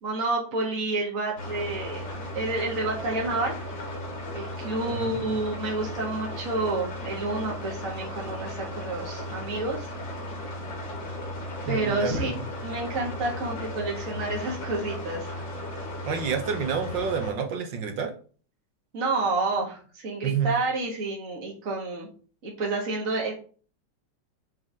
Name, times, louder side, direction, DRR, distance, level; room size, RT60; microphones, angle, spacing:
voice 1, 0.0-2.0 2.3-3.6 4.3-9.9 11.7-12.3 12.6-15.5 18.9-22.1 22.4-23.3, right 2 dB, 45° right, -1 dB, 2.1 m, -29 dB
sound 1, 1.4-17.3, left 1 dB, 75° left, 2.6 m, -36 dB
voice 2, 4.9-5.3 11.7-12.5 16.1-18.1 20.2-20.5, right 6 dB, 75° right, 5 dB, 2.0 m, -29 dB
7.2 x 3.9 x 4.8 m, 0.40 s
omnidirectional pair, 2.0 m